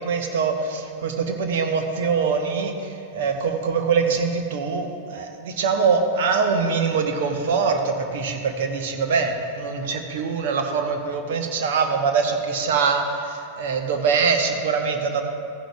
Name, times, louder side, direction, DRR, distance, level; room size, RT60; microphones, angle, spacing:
voice 1, 0.0-2.7 3.1-15.2, right 5 dB, 55° right, 5 dB, 0.9 m, -23 dB
14.5 x 10.0 x 2.4 m, 2.5 s
figure-of-eight pair, 90°, 0 cm